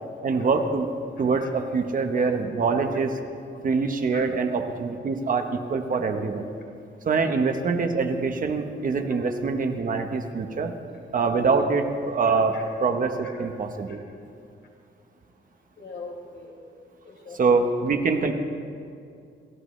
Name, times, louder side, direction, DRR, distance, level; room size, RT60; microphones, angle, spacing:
voice 1, 0.2-0.9 1.2-3.2 3.6-6.5 7.0-10.8 11.1-14.0 17.3-18.3, right 4 dB, 40° right, 5 dB, 1.1 m, -24 dB
voice 2, 15.8-16.5 17.0-17.7, left 4 dB, 60° left, -1 dB, 3.7 m, -42 dB
29.0 x 14.5 x 3.2 m, 2.4 s
wide cardioid pair, 170°, 21 cm